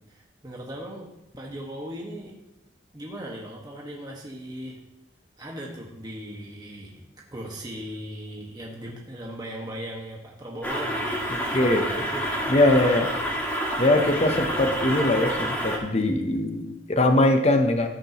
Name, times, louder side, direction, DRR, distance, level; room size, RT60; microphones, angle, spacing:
voice 1, 0.1-1.1 1.4-2.3 2.9-4.8 5.4-11.3 12.1-12.6, equal, 20° right, -3 dB, 1.5 m, -38 dB
sound 1, 10.6-15.8, equal, 10° left, 2.1 m, -28 dB
voice 2, 11.5-12.1 12.5-13.1 13.8-17.9, left 1 dB, 35° left, 6 dB, 0.8 m, -21 dB
14.0 x 8.6 x 3.0 m, 0.87 s
head